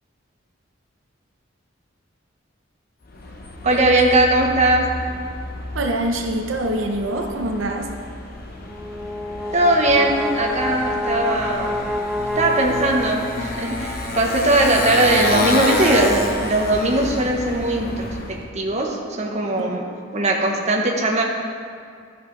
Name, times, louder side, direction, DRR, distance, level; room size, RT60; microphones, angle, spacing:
Motorcycle, 3.1-18.5, left 2 dB, 50° left, 0.8 m, -29 dB
voice 1, 3.6-4.9 9.5-11.9 12.4-18.1 18.5-19.8 20.1-21.2, right 2 dB, 35° right, 0 dB, 0.9 m, -19 dB
voice 2, 5.7-7.9 19.6-19.8, right 1 dB, 85° right, 3 dB, 0.7 m, -24 dB
Brass instrument, 8.6-13.7, left 1 dB, ahead, 0.3 m, -28 dB
12.5 x 5.5 x 3.2 m, 2.2 s
head